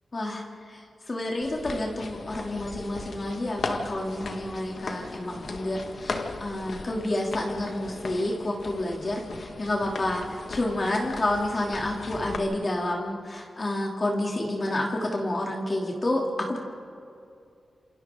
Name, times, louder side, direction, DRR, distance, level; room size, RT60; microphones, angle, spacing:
voice 1, 0.1-16.6, left 1 dB, 35° left, -1 dB, 2.9 m, -29 dB
sound 1, 1.4-12.4, left 3 dB, 65° left, 1.7 m, -38 dB
29.0 x 28.0 x 3.8 m, 2.5 s
wide cardioid pair, 120°, 0 cm